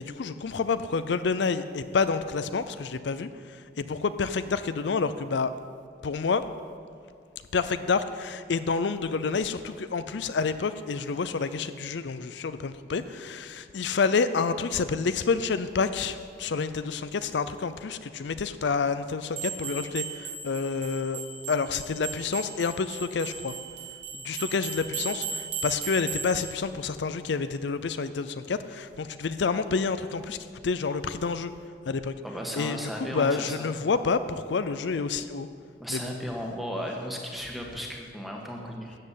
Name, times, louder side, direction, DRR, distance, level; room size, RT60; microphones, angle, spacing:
voice 1, 0.0-5.5 6.0-6.4 7.5-21.2 21.5-23.5 24.1-30.4 30.6-31.5 31.9-32.1 32.6-35.5 35.9-36.1, left 5 dB, 75° left, 12 dB, 0.5 m, -28 dB
sound 1, 19.3-26.5, right 6 dB, 70° right, 3.0 m, -36 dB
voice 2, 32.2-33.7 35.8-39.0, equal, ahead, 0 dB, 1.5 m, -35 dB
13.0 x 7.7 x 8.3 m, 2.2 s
head